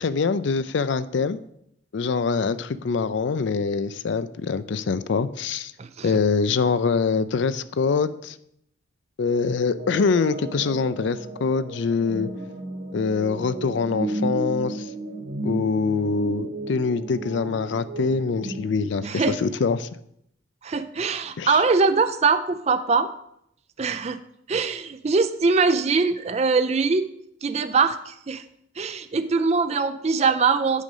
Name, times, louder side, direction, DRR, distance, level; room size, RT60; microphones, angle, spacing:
voice 1, 0.0-1.4 1.9-5.7 6.0-8.4 9.2-12.3 12.9-14.9 15.4-19.9 21.4-21.6, left 4 dB, 65° left, 14 dB, 0.4 m, -24 dB
voice 2, 5.8-6.1 19.0-19.4 20.6-23.1 23.8-24.2 24.5-27.1 27.4-28.4 28.8-30.8, right 4 dB, 35° right, 10 dB, 0.4 m, -22 dB
sound 1, 9.8-18.7, right 2 dB, 65° right, 1.3 m, -33 dB
8.3 x 5.1 x 5.4 m, 0.74 s
head